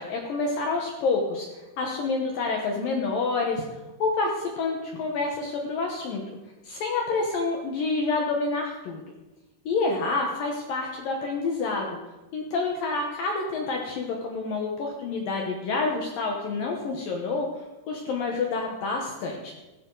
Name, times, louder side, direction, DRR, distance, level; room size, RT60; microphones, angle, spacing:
voice 1, 0.0-1.5 1.8-3.6 4.0-6.2 6.7-9.0 9.7-11.9 12.3-17.5 17.9-19.5, left 3 dB, 70° left, 1 dB, 2.2 m, -28 dB
16.0 x 13.5 x 4.0 m, 1.1 s
omnidirectional pair, 5.6 m